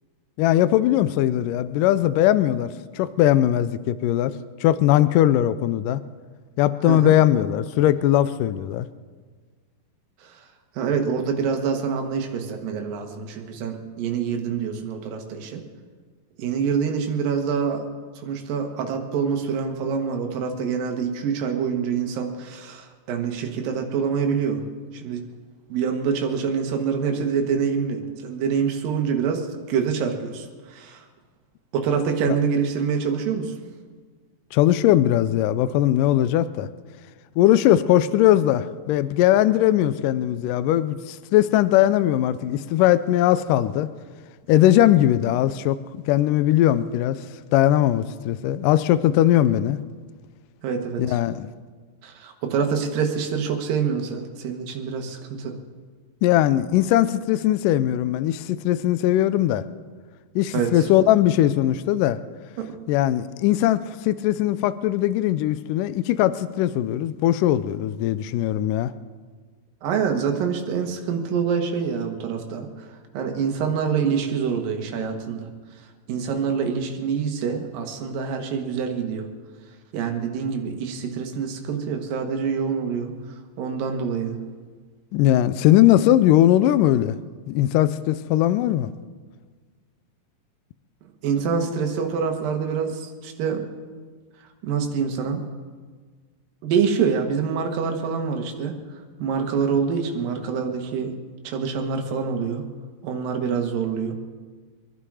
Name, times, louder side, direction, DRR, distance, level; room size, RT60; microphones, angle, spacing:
voice 1, 0.4-4.3 4.6-6.0 6.6-8.9 34.5-36.7 37.4-43.9 44.5-47.2 47.5-49.8 51.0-51.5 56.2-59.6 60.4-62.2 62.9-68.9 85.1-87.2 87.5-88.9, left 13 dB, 80° left, 14 dB, 2.0 m, -20 dB
voice 2, 6.8-7.2 10.2-10.5 10.7-15.6 16.4-17.9 18.2-24.6 24.9-25.2 25.7-31.1 31.7-33.6 50.6-51.2 52.0-55.6 60.5-60.9 62.6-62.8 69.8-75.5 75.8-79.3 79.9-84.4 91.2-93.6 94.6-95.4 96.6-101.2 101.4-102.6 103.0-104.1, right 6 dB, 75° right, 4 dB, 3.1 m, -26 dB
24.0 x 11.5 x 4.9 m, 1.5 s
omnidirectional pair, 4.2 m